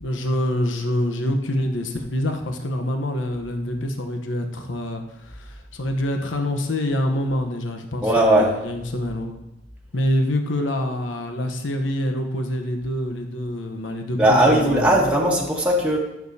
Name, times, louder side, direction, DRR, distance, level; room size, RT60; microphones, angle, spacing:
voice 1, 0.0-9.4 9.9-14.2 14.4-15.0, left 1 dB, 85° left, 5 dB, 1.0 m, -26 dB
voice 2, 8.0-8.5 14.2-16.0, right 1 dB, 5° right, -3 dB, 1.2 m, -18 dB
13.5 x 7.0 x 2.8 m, 0.92 s
head